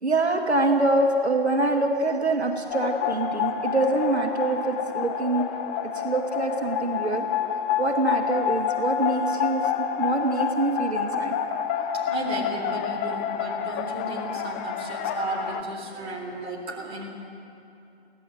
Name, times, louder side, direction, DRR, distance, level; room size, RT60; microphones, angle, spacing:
voice 1, 0.0-5.6 5.8-7.3 7.8-11.4, right 2 dB, 80° right, 3 dB, 2.4 m, -25 dB
sound 1, 2.7-15.6, left 8 dB, 10° left, 0.4 m, -28 dB
voice 2, 11.8-17.1, right 2 dB, 15° right, -2 dB, 3.6 m, -34 dB
24.0 x 17.0 x 7.9 m, 2.8 s
figure-of-eight pair, 130°, 32 cm